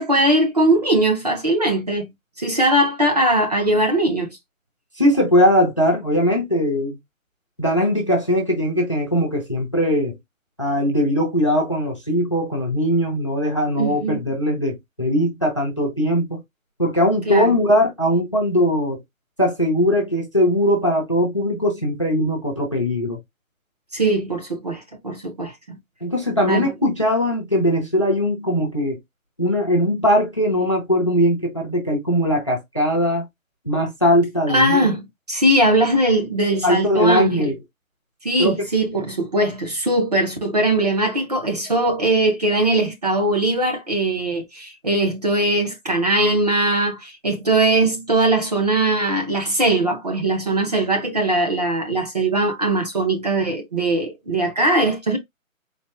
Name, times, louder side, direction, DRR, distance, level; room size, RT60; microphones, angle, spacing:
voice 1, 0.0-2.1 2.4-4.3 13.8-14.2 17.3-17.5 23.9-25.8 26.5-26.7 34.5-37.5 38.2-55.2, right 1 dB, 30° right, 0.7 m, -20 dB
voice 2, 5.0-7.0 7.6-10.1 10.6-16.4 16.8-19.0 19.4-23.2 26.0-29.0 29.4-33.3 33.6-34.9 36.6-37.5 38.4-38.5, equal, 25° left, 0.5 m, -20 dB
4.1 x 2.2 x 3.4 m
hypercardioid pair, 165°, 41 cm